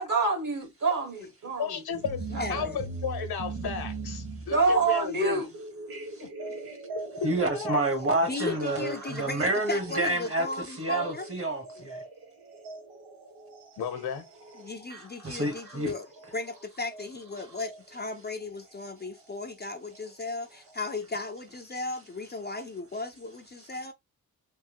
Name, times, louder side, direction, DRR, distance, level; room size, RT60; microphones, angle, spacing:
voice 1, 0.0-1.7 2.3-2.7 4.5-5.5, right 3 dB, 55° right, 1.8 m, -26 dB
voice 2, 1.6-2.2 2.5-5.5 6.2-6.3 7.2-7.8 13.8-14.3, left 6 dB, 75° left, 1.1 m, -34 dB
sound 1, 1.9-17.8 19.0-19.1 19.9-20.0 20.7-20.8, right 3 dB, 90° right, 1.2 m, -41 dB
voice 3, 2.3-2.8 8.2-11.3 11.8-11.9 14.6-16.1 16.3-23.9, left 3 dB, 25° left, 0.5 m, -36 dB
voice 4, 7.2-10.5 10.8-12.0 15.2-15.9, right 2 dB, 35° right, 1.2 m, -28 dB
3.5 x 2.7 x 2.9 m
cardioid pair, 90°, 38 cm